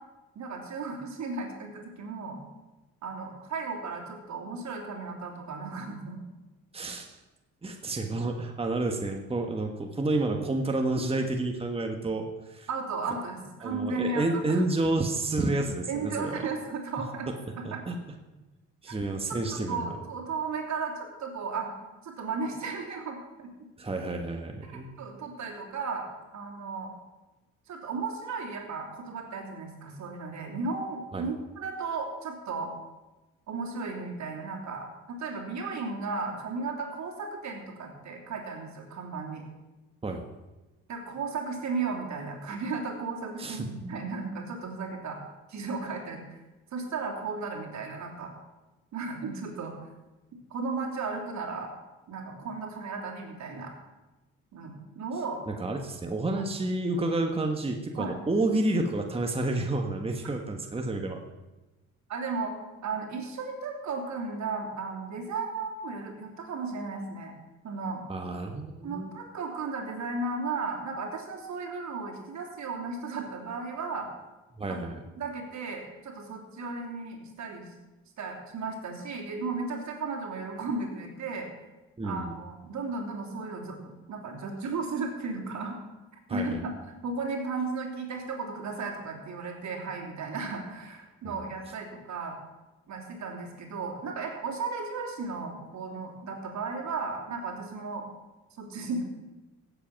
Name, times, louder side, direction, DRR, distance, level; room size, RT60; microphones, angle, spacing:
voice 1, 0.3-2.4 3.0-6.2 12.7-14.6 15.9-17.3 17.6-17.8 18.9-19.0 19.3-21.7 22.0-23.5 24.7-26.1 26.3-26.9 27.7-32.7 33.5-39.4 40.9-45.2 45.5-46.2 46.7-48.3 48.9-49.7 50.5-51.7 52.1-53.7 54.5-55.4 56.3-56.5 58.0-58.2 62.1-62.5 62.8-67.3 67.6-68.0 68.8-74.1 74.7-74.8 75.2-77.7 78.2-81.5 82.0-85.8 86.3-86.7 87.0-92.3 92.9-98.0 98.6-99.0, right 4 dB, 70° right, 1 dB, 3.1 m, -35 dB
voice 2, 6.7-7.2 7.6-12.7 13.6-16.5 17.6-18.0 18.8-20.0 23.8-24.9 31.1-31.2 40.0-40.3 43.4-43.7 55.5-61.2 68.1-69.1 74.6-75.0 82.0-82.3 86.3-86.6, right 2 dB, 20° right, 3 dB, 1.4 m, -30 dB
16.5 x 7.9 x 5.9 m, 1.1 s
cardioid pair, 90°, 30 cm